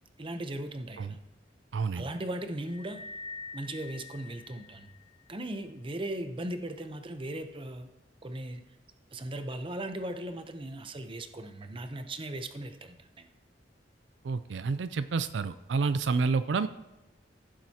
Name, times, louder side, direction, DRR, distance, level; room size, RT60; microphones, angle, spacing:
voice 1, 0.2-1.2 1.9-3.0 3.5-4.9 5.3-7.9 8.2-8.6 9.1-13.3, right 1 dB, 30° right, 8 dB, 0.7 m, -38 dB
voice 2, 1.7-2.0 14.2-16.7, right 4 dB, 75° right, 13 dB, 0.4 m, -29 dB
sound 1, 2.6-5.3, left 4 dB, 35° left, 0.8 m, -45 dB
15.0 x 7.5 x 2.9 m, 0.99 s
head